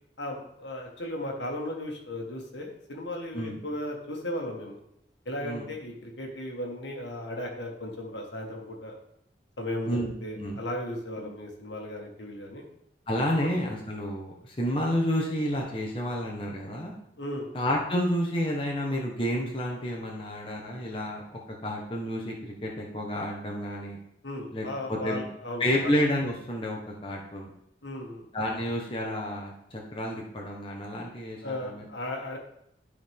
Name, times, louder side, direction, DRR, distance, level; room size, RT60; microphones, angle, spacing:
voice 1, 0.2-4.8 5.2-9.0 9.6-12.7 13.4-13.5 17.2-17.5 24.2-25.9 27.8-28.2 31.4-32.4, left 1 dB, 80° left, 0 dB, 1.8 m, -36 dB
voice 2, 9.9-10.6 11.2-11.3 13.1-16.9 17.5-24.0 24.5-25.3 25.6-27.5 28.3-31.9, equal, 30° left, -2 dB, 1.2 m, -30 dB
12.0 x 4.9 x 3.6 m, 0.75 s
head